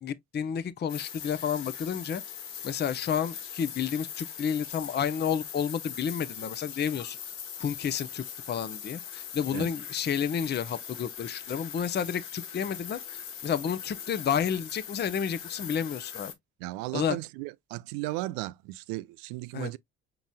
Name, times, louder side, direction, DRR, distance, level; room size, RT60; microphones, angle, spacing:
voice 1, 0.0-2.2 2.6-7.2 7.6-13.0 13.4-16.3 16.9-17.2 19.5-19.7, left 8 dB, 25° left, 0.6 m, -30 dB
sound 1, 0.9-16.3, left 8 dB, 75° left, 1.1 m, -41 dB
voice 2, 16.6-19.8, right 19 dB, 65° right, 0.5 m, -35 dB
6.1 x 3.9 x 2.2 m
figure-of-eight pair, 50°, 38 cm